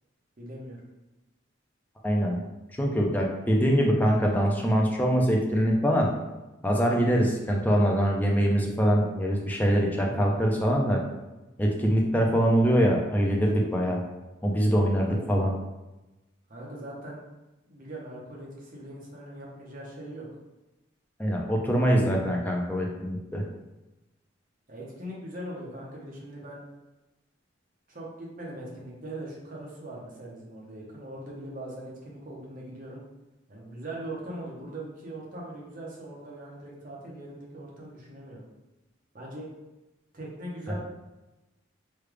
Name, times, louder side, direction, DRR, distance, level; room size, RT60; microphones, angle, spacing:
voice 1, 0.4-0.8 14.7-14.8 15.1-15.3 16.5-17.2 17.7-20.3 24.7-26.6 27.9-33.0 33.5-38.4 39.1-39.5 40.1-40.8, right 1 dB, 45° right, -4 dB, 0.8 m, -40 dB
voice 2, 2.0-2.4 2.8-6.1 6.6-11.0 11.6-14.0 14.4-15.5 21.2-23.4, equal, 10° left, -1 dB, 0.4 m, -23 dB
3.2 x 2.3 x 3.3 m, 1.0 s
head